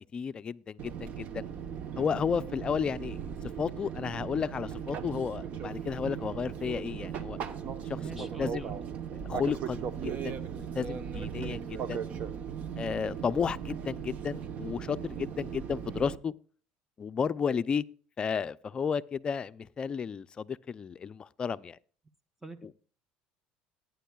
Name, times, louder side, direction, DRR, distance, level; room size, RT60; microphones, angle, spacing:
voice 1, 0.0-1.5 2.0-3.2 3.6-7.4 7.8-8.7 9.3-12.0 12.8-16.3 17.0-17.8 18.2-21.8 22.6-22.7, left 6 dB, 30° left, 0.4 m, -33 dB
Fixed-wing aircraft airplane, 0.8-16.2, right 8 dB, 50° right, 1.0 m, -38 dB
voice 2, 8.0-8.8 22.4-22.7, right 2 dB, 10° right, 0.9 m, -44 dB
18.5 x 9.3 x 2.3 m
supercardioid pair, 105°, 3 cm